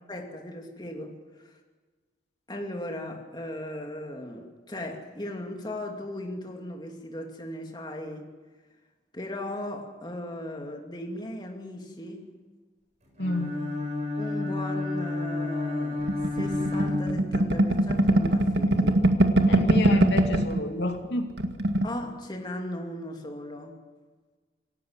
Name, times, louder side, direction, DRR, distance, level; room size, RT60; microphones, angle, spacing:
voice 1, 0.1-1.1 1.4-1.6 2.5-8.3 9.1-12.4 14.2-16.1 16.3-19.1 21.8-23.8, left 1 dB, 25° left, 2 dB, 2.7 m, -37 dB
voice 2, 13.2-13.7 19.4-21.3, left 1 dB, 75° left, 4 dB, 2.5 m, -29 dB
Bowed string instrument, 13.2-17.8, left 2 dB, 40° right, 7.3 m, -30 dB
sound 1, 16.1-20.6 20.9-21.1 21.3-21.9, right 1 dB, 70° right, 1.9 m, -22 dB
27.0 x 17.0 x 7.6 m, 1.4 s
head